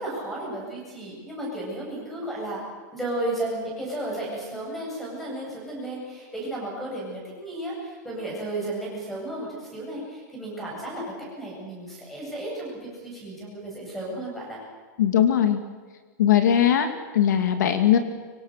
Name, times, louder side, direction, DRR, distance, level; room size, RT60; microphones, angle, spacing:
voice 1, 0.0-2.6 2.9-14.6, right 1 dB, ahead, -3 dB, 7.8 m, -33 dB
voice 2, 15.0-15.6 16.2-18.0, left 10 dB, 70° left, 8 dB, 2.3 m, -20 dB
24.5 x 24.5 x 6.7 m, 1.5 s
supercardioid pair, 180°, 10 cm